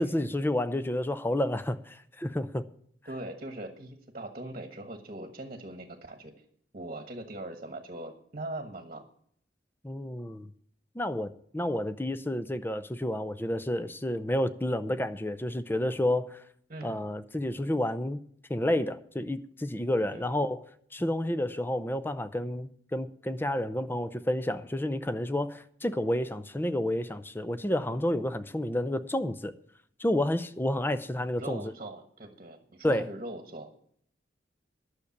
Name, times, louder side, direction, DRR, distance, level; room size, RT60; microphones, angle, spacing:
voice 1, 0.0-2.7 9.8-10.5 10.9-16.4 16.8-18.2 18.5-20.6 20.9-29.5 30.0-31.6 32.8-33.1, left 1 dB, 10° left, 0.5 m, -30 dB
voice 2, 3.1-6.3 6.7-9.0 16.7-17.0 20.1-20.3 31.4-33.7, right 1 dB, 40° right, 1.3 m, -41 dB
11.5 x 6.6 x 8.4 m
head